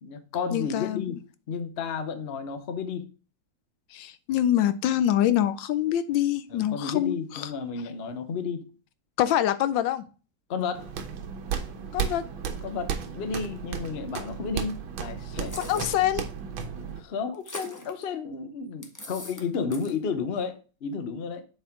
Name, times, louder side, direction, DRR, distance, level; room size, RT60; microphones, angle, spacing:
voice 1, 0.0-3.1 6.5-8.7 10.5-10.9 12.6-15.6 17.0-21.4, left 5 dB, 50° left, 0.8 m, -32 dB
voice 2, 0.5-1.0 3.9-7.5 9.2-10.0 11.9-12.3 15.7-16.2, left 11 dB, 75° left, 1.2 m, -25 dB
sound 1, 10.7-17.0, right 7 dB, 90° right, 1.7 m, -34 dB
sound 2, 15.4-16.1 17.3-18.0 18.8-19.4 19.7-20.0, left 1 dB, 20° left, 0.5 m, -40 dB
7.5 x 4.5 x 3.6 m
omnidirectional pair, 2.1 m